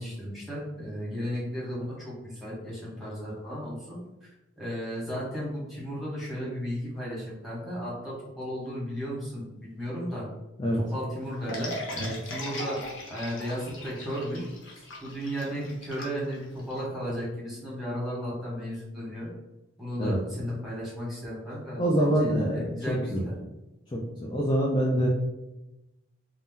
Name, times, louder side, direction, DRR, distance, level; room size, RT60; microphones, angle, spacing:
voice 1, 0.0-4.3 4.6-10.3 10.7-12.8 13.1-14.5 14.7-19.3 19.8-23.3, equal, ahead, -8 dB, 1.1 m, -35 dB
sound 1, 11.5-16.8, left 1 dB, 85° left, 0.8 m, -38 dB
voice 2, 21.8-23.3 23.9-25.1, equal, 20° left, -4 dB, 0.4 m, -25 dB
2.7 x 2.0 x 3.6 m, 0.99 s
head